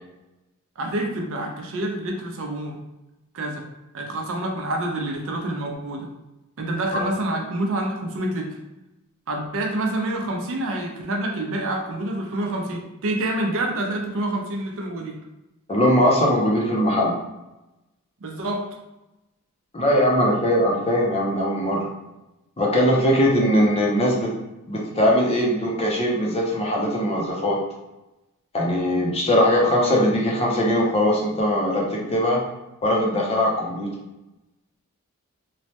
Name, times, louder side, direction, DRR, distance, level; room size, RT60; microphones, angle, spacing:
voice 1, 0.8-2.8 3.3-3.7 3.9-6.1 6.6-8.6 9.3-15.2 18.2-18.6, right 1 dB, 60° right, 1 dB, 0.5 m, -27 dB
voice 2, 15.7-17.1 19.7-21.9 22.6-24.3 24.7-27.6 28.5-32.4 32.8-33.9, equal, 25° left, -2 dB, 0.6 m, -20 dB
3.1 x 2.1 x 2.7 m, 0.98 s
head